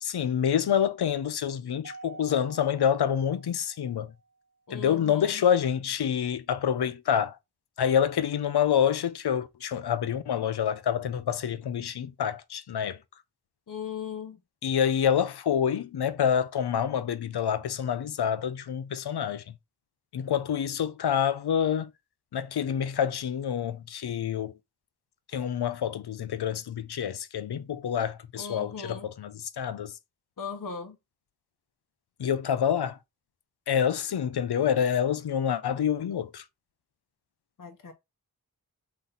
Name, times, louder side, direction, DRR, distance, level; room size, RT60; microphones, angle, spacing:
voice 1, 0.0-4.1 4.7-7.4 7.8-13.0 14.6-19.5 20.1-21.9 22.3-24.5 25.3-30.0 32.2-33.0 33.7-36.4, left 8 dB, 80° left, 0.6 m, -27 dB
Mallet percussion, 1.8-4.3, right 3 dB, 25° right, 0.8 m, -48 dB
voice 2, 4.7-5.3 13.7-14.4 28.4-29.1 30.4-31.0 37.6-37.9, left 6 dB, 55° left, 0.9 m, -38 dB
4.0 x 3.2 x 3.9 m
wide cardioid pair, 75°, 38 cm